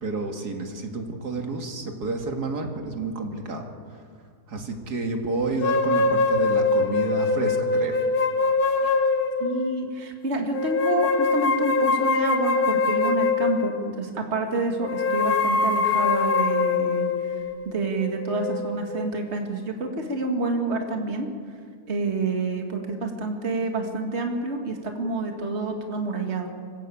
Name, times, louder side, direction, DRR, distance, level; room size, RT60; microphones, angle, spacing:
voice 1, 0.0-4.0 4.5-8.0, right 3 dB, 75° right, 3 dB, 2.8 m, -30 dB
sound 1, 5.6-9.8 10.5-14.0 14.8-19.2, left 4 dB, 65° left, 1.8 m, -23 dB
voice 2, 9.4-17.1 17.7-21.3 21.9-26.5, right 3 dB, 40° right, 3 dB, 2.3 m, -28 dB
25.5 x 16.0 x 8.6 m, 2.1 s
omnidirectional pair, 1.7 m